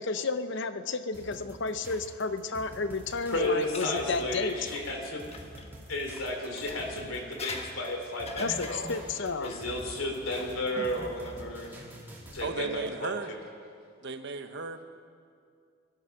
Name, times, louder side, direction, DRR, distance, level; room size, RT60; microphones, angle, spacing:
voice 1, 0.0-4.6 8.4-9.6, left 4 dB, 60° left, 10 dB, 0.7 m, -32 dB
sound 1, 1.1-12.5, equal, 10° right, 2.4 m, -48 dB
sound 2, 3.0-5.7 6.4-11.8, left 3 dB, 30° left, 1.2 m, -44 dB
voice 2, 3.3-5.2 5.9-11.8 12.3-13.4, left 1 dB, 80° left, 2 dB, 3.0 m, -33 dB
voice 3, 12.4-13.3 14.0-14.8, right 3 dB, 60° right, 8 dB, 1.0 m, -35 dB
20.5 x 12.0 x 5.8 m, 2.3 s
head